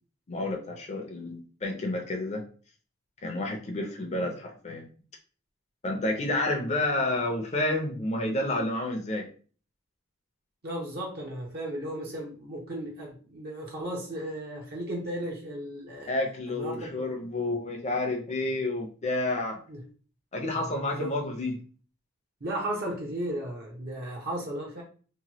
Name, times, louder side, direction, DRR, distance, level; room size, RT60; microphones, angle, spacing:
voice 1, 0.3-2.4 3.2-4.9 5.8-9.3 16.1-19.6 20.3-21.6, left 2 dB, 30° left, 1 dB, 0.5 m, -30 dB
voice 2, 10.6-16.1 16.5-17.1 19.7-19.8 20.5-21.1 22.4-24.8, right 1 dB, 50° right, -2 dB, 0.8 m, -35 dB
3.0 x 2.2 x 2.8 m, 0.40 s
head